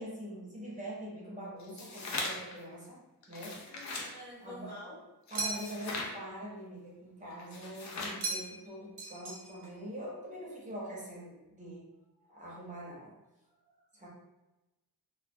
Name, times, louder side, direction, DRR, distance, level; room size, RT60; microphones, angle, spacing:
voice 1, 0.0-3.0 3.3-3.6 4.4-4.7 5.3-11.9 12.3-13.1 13.9-14.1, equal, 20° right, -5 dB, 0.7 m, -43 dB
sound 1, 1.6-2.6 3.2-4.1 5.3-6.1 7.4-8.2, left 2 dB, 45° left, 0.4 m, -39 dB
voice 2, 3.7-5.0, left 1 dB, 10° left, -10 dB, 0.9 m, -48 dB
sound 2, 5.4-6.0 8.2-8.7 9.0-9.7, right 3 dB, 85° right, 0.7 m, -38 dB
2.2 x 2.1 x 2.6 m, 1.0 s
wide cardioid pair, 150°, 39 cm